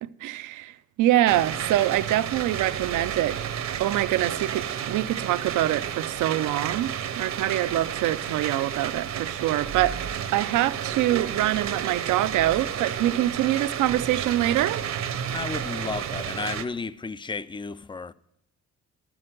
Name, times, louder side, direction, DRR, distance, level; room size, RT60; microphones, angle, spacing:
voice 1, 0.0-14.8, right 14 dB, 80° right, 0.6 m, -25 dB
sound 1, 1.3-16.6, right 9 dB, 65° right, 0.9 m, -31 dB
voice 2, 15.3-18.1, left 4 dB, 15° left, 0.4 m, -33 dB
12.0 x 6.2 x 7.6 m
cardioid pair, 90°, 30 cm